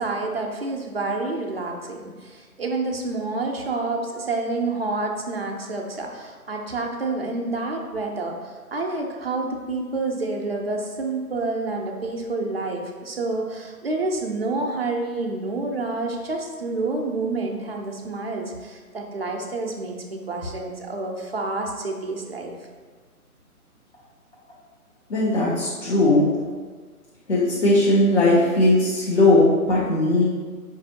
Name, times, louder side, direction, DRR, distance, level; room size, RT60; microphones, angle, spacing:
voice 1, 0.0-22.5, right 3 dB, 45° right, 1 dB, 0.4 m, -28 dB
voice 2, 25.1-26.3 27.3-30.2, left 2 dB, 45° left, -7 dB, 0.8 m, -18 dB
5.2 x 2.5 x 2.7 m, 1.5 s
hypercardioid pair, 160°, 45 cm